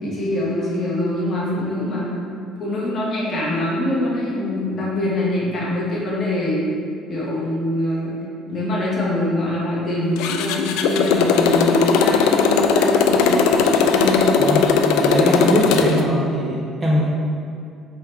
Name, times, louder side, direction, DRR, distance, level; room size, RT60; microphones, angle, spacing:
voice 1, 0.0-2.1 2.6-6.6 7.1-8.1 8.5-13.5 13.9-14.2, left 1 dB, 25° left, -6 dB, 1.1 m, -24 dB
Motorcycle, 10.2-16.0, left 5 dB, 85° left, 0.3 m, -18 dB
voice 2, 14.4-14.8 15.0-17.1, equal, 15° right, -4 dB, 0.4 m, -21 dB
3.6 x 3.3 x 4.4 m, 2.5 s
cardioid pair, 180°, 0 cm